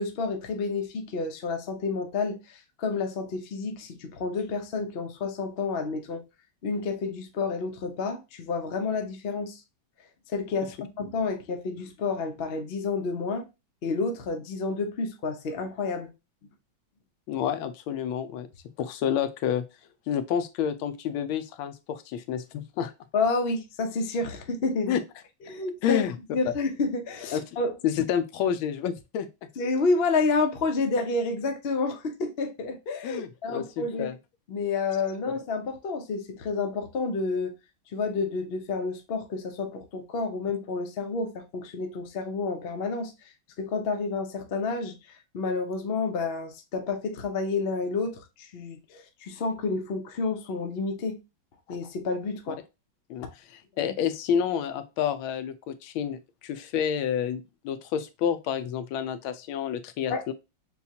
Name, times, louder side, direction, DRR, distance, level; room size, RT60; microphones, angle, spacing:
voice 1, 0.0-6.2 6.6-9.6 10.3-13.5 13.8-16.1 23.1-25.0 25.5-26.0 26.3-27.7 29.6-34.1 34.5-37.5 37.9-43.1 43.6-45.0 45.3-51.2 51.7-52.6 53.8-53.9 60.1-60.2, left 4 dB, 65° left, 0.5 m, -29 dB
voice 2, 17.3-18.5 18.8-19.6 20.1-22.9 24.9-25.0 25.8-26.2 27.3-27.4 27.8-29.5 33.0-34.2 52.5-52.6 53.1-60.3, left 8 dB, 90° left, 1.4 m, -29 dB
6.7 x 2.4 x 2.8 m
omnidirectional pair, 2.2 m